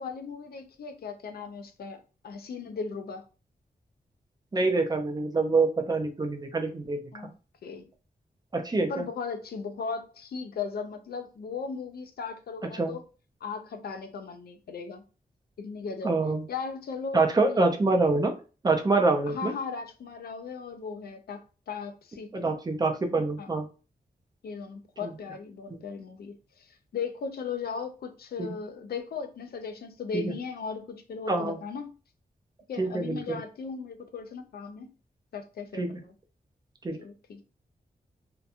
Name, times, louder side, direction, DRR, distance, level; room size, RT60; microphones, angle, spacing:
voice 1, 0.0-3.2 7.1-7.3 7.6-7.9 8.9-13.0 13.4-15.0 15.6-16.1 16.5-17.6 19.3-22.6 23.4-23.5 24.4-31.9 32.7-34.9 35.3-36.1 37.0-37.4, left 5 dB, 75° left, 0.4 m, -37 dB
voice 2, 4.5-7.0 8.5-9.0 12.8-12.9 16.0-16.4 17.1-18.3 18.6-19.5 22.3-23.7 25.0-25.1 28.4-28.5 30.1-30.3 31.3-31.6 32.8-33.4 35.8-35.9 36.8-37.0, right 3 dB, 25° right, 0.4 m, -25 dB
2.8 x 2.2 x 2.4 m
wide cardioid pair, 165°, 16 cm